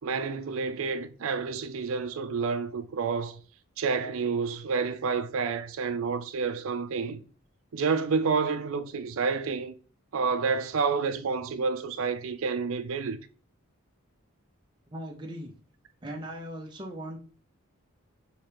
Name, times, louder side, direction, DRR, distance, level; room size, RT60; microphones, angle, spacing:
voice 1, 0.0-3.4 3.8-7.2 7.7-9.7 10.1-13.2, right 5 dB, 70° right, 0.4 m, -29 dB
voice 2, 14.9-15.5 16.0-17.2, equal, 20° right, 0.5 m, -38 dB
5.7 x 2.8 x 3.3 m
head